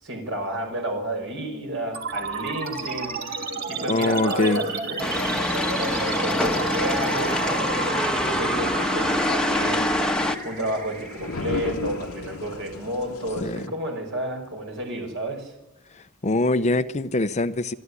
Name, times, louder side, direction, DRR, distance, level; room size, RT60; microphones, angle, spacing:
voice 1, 0.0-5.2 5.6-15.5, right 1 dB, 60° right, 5.5 m, -31 dB
sound 1, 1.9-12.9, right 3 dB, 45° right, 2.6 m, -31 dB
voice 2, 3.9-4.6 13.4-13.7 15.9-17.7, left 2 dB, 35° left, 0.7 m, -23 dB
sound 2, 5.0-10.4, left 1 dB, 5° left, 1.2 m, -25 dB
sound 3, 5.1-13.7, left 3 dB, 85° left, 1.3 m, -38 dB
25.5 x 12.5 x 9.7 m
head